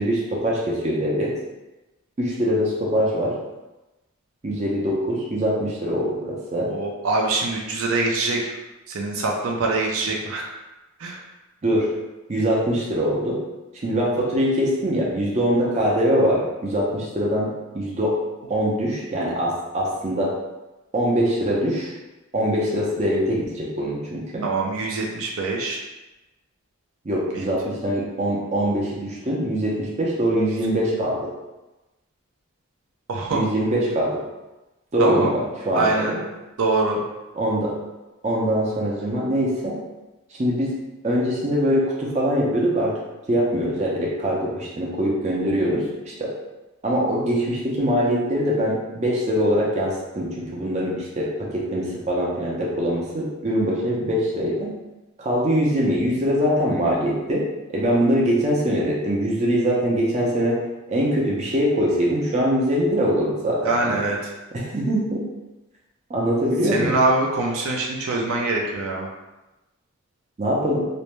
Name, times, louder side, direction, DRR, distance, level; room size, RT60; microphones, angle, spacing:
voice 1, 0.0-1.3 2.2-3.3 4.4-6.7 11.6-11.9 12.3-13.4 13.8-17.5 17.7-18.1 18.5-20.3 20.9-21.9 22.3-24.4 27.0-31.3 33.3-34.2 34.9-36.2 37.4-37.7 38.2-39.8 40.3-40.7 41.0-42.9 43.3-46.3 46.8-54.7 55.2-57.4 57.7-60.6 60.9-64.0 64.5-65.2 66.1-67.0 70.4-70.9, equal, 30° right, -4 dB, 0.5 m, -23 dB
voice 2, 6.7-8.6 8.9-10.5 11.0-11.2 24.4-25.8 27.3-27.5 33.1-33.5 35.0-35.3 35.7-36.1 36.6-37.0 63.6-64.2 66.7-69.1, right 2 dB, 80° right, -1 dB, 0.5 m, -24 dB
2.5 x 2.1 x 3.0 m, 1.0 s
head